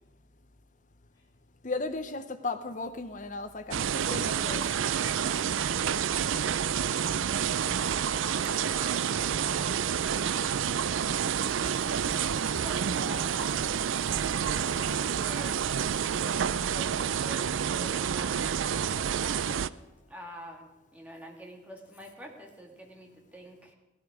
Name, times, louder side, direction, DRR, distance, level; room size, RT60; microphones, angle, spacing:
voice 1, 1.6-4.6 5.0-5.2 11.6-11.7 12.5-12.6, left 3 dB, 40° left, 11 dB, 0.7 m, -36 dB
Heavy rain with thunder, 3.7-19.7, right 8 dB, 75° right, 0.4 m, -29 dB
voice 2, 4.3-4.9 5.2-9.9 10.2-11.1 11.6-11.7, left 1 dB, 20° left, -7 dB, 4.3 m, -50 dB
Engine, 11.2-16.3, right 1 dB, 40° right, 1.0 m, -47 dB
voice 3, 12.2-15.5 16.0-19.8 20.1-23.7, equal, 5° right, 0 dB, 2.1 m, -47 dB
17.0 x 12.5 x 4.9 m, 1.2 s
head